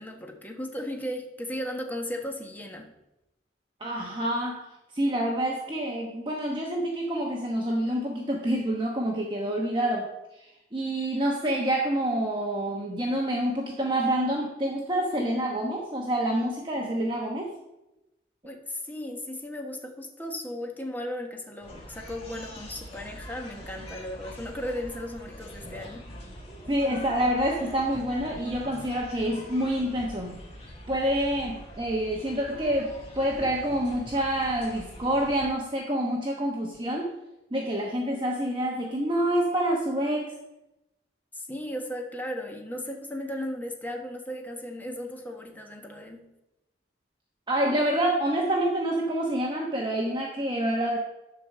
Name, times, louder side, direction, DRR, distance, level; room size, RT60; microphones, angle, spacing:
voice 1, 0.0-2.9 18.4-26.1 41.3-46.3, left 1 dB, 10° left, 2 dB, 1.2 m, -36 dB
voice 2, 3.8-4.7 4.9-10.1 10.4-17.5 26.7-30.4 30.9-37.1 37.5-40.3 47.5-51.0, right 1 dB, 25° right, -1 dB, 1.1 m, -27 dB
sound 1, 21.6-35.5, left 1 dB, 35° left, 2.1 m, -44 dB
10.5 x 4.7 x 6.7 m, 0.94 s
head